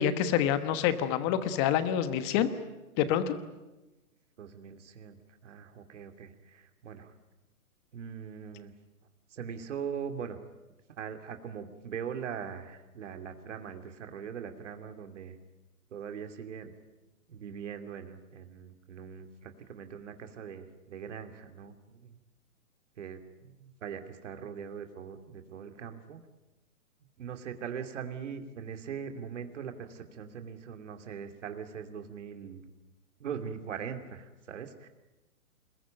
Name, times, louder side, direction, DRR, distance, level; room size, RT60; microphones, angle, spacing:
voice 1, 0.0-2.5 3.0-3.3, left 10 dB, 20° left, 12 dB, 1.2 m, -27 dB
voice 2, 4.4-7.1 7.9-8.7 9.3-10.4 10.9-15.4 15.9-16.7 17.3-22.2 23.0-26.2 27.2-32.6 33.2-34.9, right 7 dB, 55° right, 7 dB, 2.7 m, -41 dB
26.5 x 21.5 x 9.1 m, 1.1 s
hypercardioid pair, 155°, 43 cm